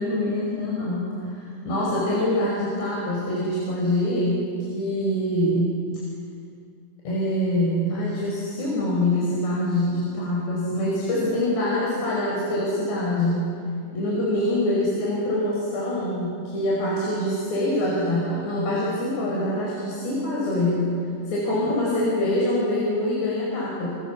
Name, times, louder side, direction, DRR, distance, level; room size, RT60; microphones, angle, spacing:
voice 1, 0.0-5.8 7.1-13.5 13.9-20.9 21.3-23.9, left 1 dB, 60° left, -4 dB, 7.1 m, -25 dB
28.0 x 26.5 x 7.1 m, 2.3 s
omnidirectional pair, 5.5 m